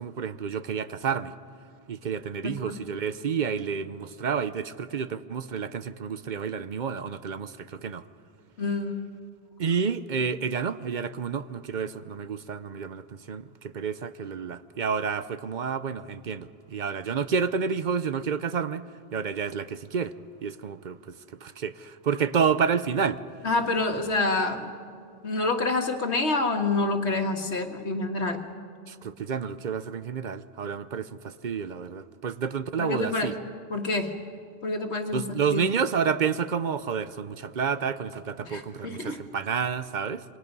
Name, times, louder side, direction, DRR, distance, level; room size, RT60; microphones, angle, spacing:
voice 1, 0.0-1.3 1.9-8.0 9.6-18.8 19.1-20.1 20.4-21.1 21.4-23.2 28.9-33.3 35.1-40.2, right 6 dB, 50° right, 0.7 m, -29 dB
voice 2, 2.4-2.8 8.6-9.1 23.4-24.7 25.2-28.4 32.8-33.3 33.7-34.1 34.6-35.6 38.4-39.2, left 3 dB, 90° left, 2.0 m, -27 dB
27.5 x 24.5 x 5.4 m
omnidirectional pair, 1.1 m